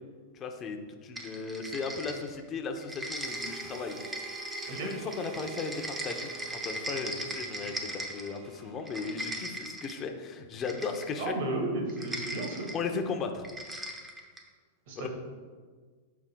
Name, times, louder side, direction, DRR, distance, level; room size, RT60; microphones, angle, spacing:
voice 1, 0.3-4.0 4.7-11.4 12.7-13.4 15.0-15.1, left 5 dB, 25° left, 5 dB, 0.7 m, -36 dB
sound 1, 1.2-2.5 2.8-8.4 8.8-10.0 10.6-11.3 11.9-12.8 13.4-14.5, right 1 dB, 10° right, 0.8 m, -39 dB
Harmonica, 3.1-9.5, right 7 dB, 35° right, 0.4 m, -47 dB
voice 2, 11.2-12.7 14.9-15.1, right 2 dB, 65° right, 0 dB, 1.6 m, -33 dB
12.0 x 4.8 x 2.3 m, 1.5 s
supercardioid pair, 140°, 0 cm